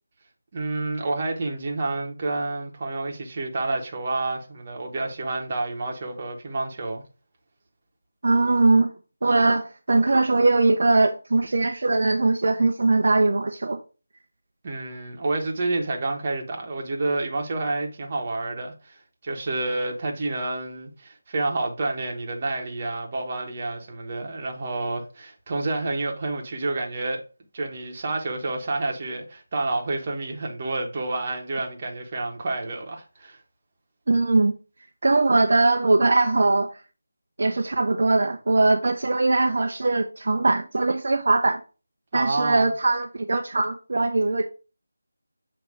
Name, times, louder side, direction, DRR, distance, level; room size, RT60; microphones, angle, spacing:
voice 1, 0.5-7.0 14.6-27.2 27.5-33.4 42.1-42.7, right 2 dB, 30° right, 1.1 m, -29 dB
voice 2, 8.2-8.9 9.2-13.8 34.1-34.5 35.0-36.7 37.4-41.6 42.1-44.5, right 2 dB, 60° right, 0.6 m, -21 dB
6.9 x 2.9 x 4.8 m
figure-of-eight pair, 170°, 0 cm